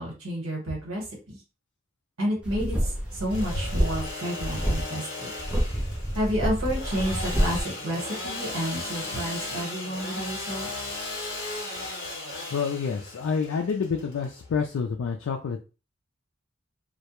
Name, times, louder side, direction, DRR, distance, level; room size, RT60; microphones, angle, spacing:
voice 1, 0.0-1.4 2.2-5.3 6.1-10.7, equal, 90° right, -2 dB, 1.2 m, -30 dB
sound 1, 2.4-4.1 4.4-4.8 5.4-7.6, equal, 5° right, 0.5 m, -28 dB
Engine / Sawing, 3.1-14.8, left 2 dB, 60° left, 1.0 m, -36 dB
voice 2, 12.5-15.6, left 5 dB, 75° left, 1 dB, 0.4 m, -28 dB
2.2 x 2.1 x 2.9 m, 0.32 s
head